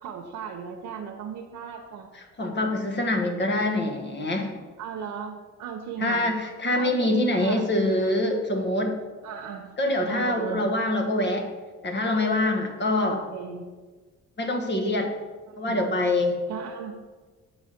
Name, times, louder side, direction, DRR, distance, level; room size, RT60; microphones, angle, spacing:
voice 1, 0.0-2.1 4.8-6.3 6.7-8.2 9.2-9.8 10.1-10.7 13.0-13.7 15.5-15.9 16.5-16.9, right 7 dB, 85° right, 0 dB, 0.9 m, -37 dB
voice 2, 2.1-4.5 6.0-9.0 9.8-11.5 11.8-13.2 14.4-15.1 15.6-16.4, left 1 dB, 35° left, 3 dB, 1.3 m, -25 dB
8.2 x 4.1 x 6.6 m, 1.4 s
cardioid pair, 90°, 30 cm